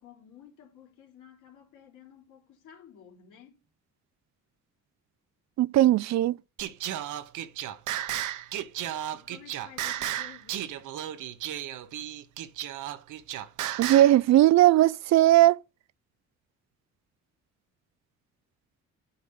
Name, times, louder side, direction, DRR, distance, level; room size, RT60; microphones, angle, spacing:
voice 1, 0.0-3.6 9.1-11.1, left 9 dB, 85° left, 3.1 m, -53 dB
voice 2, 5.6-6.4 13.8-15.6, right 14 dB, 65° right, 0.5 m, -19 dB
Singing, 6.6-14.2, right 12 dB, 80° right, 1.0 m, -34 dB
7.8 x 5.1 x 5.7 m
cardioid pair, 90°, 30 cm